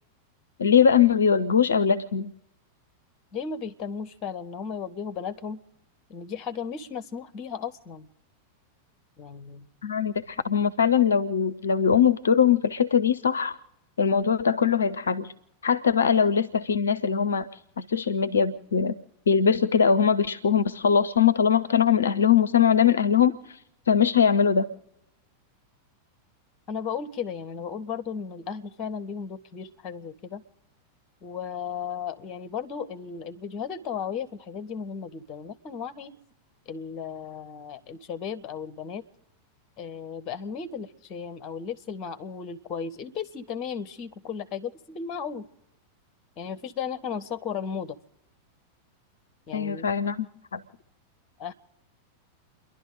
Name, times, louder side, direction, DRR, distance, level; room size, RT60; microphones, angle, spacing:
voice 1, 0.6-2.3 9.8-13.6 14.0-15.3 15.6-17.5 17.8-19.0 19.3-23.6 23.9-24.7 49.5-50.3 50.5-50.6, left 7 dB, 70° left, 13 dB, 0.5 m, -21 dB
voice 2, 3.3-5.6 6.1-8.1 9.2-9.7 26.7-30.4 31.2-36.1 36.7-39.0 39.8-45.5 46.4-48.0 49.5-49.9 51.4-51.5, left 6 dB, 35° left, 13 dB, 1.0 m, -35 dB
30.0 x 11.5 x 3.9 m, 0.87 s
figure-of-eight pair, 90°, 0 cm